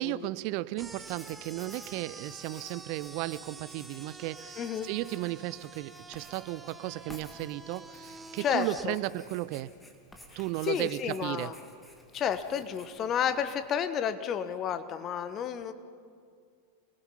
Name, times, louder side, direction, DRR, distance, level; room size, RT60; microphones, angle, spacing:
voice 1, 0.0-9.7 10.3-11.5, right 18 dB, 45° right, 17 dB, 0.5 m, -35 dB
Writing, 0.8-13.7, left 1 dB, 5° left, 2.5 m, -55 dB
sound 1, 0.8-8.9, right 3 dB, 10° right, 1.3 m, -48 dB
voice 2, 4.6-4.9 8.4-8.9 10.6-11.5 12.1-15.7, left 8 dB, 30° left, 11 dB, 1.2 m, -31 dB
29.0 x 20.5 x 5.6 m, 2.2 s
figure-of-eight pair, 90°, 0 cm